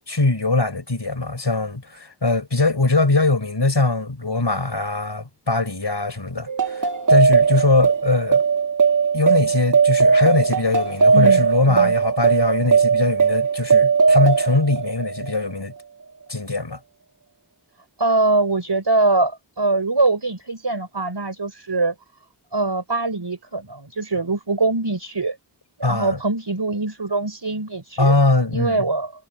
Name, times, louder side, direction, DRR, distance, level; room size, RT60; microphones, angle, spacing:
voice 1, 0.1-8.4 9.1-15.7 16.3-16.8 25.8-26.2 28.0-28.9, left 3 dB, 80° left, 5.7 m, -21 dB
sound 1, 6.5-15.5, right 5 dB, 45° right, 1.2 m, -18 dB
voice 2, 11.1-11.9 18.0-21.9 22.5-25.4 25.8-28.2 28.5-29.1, right 2 dB, 75° right, 4.9 m, -23 dB
wide cardioid pair, 40°, 41 cm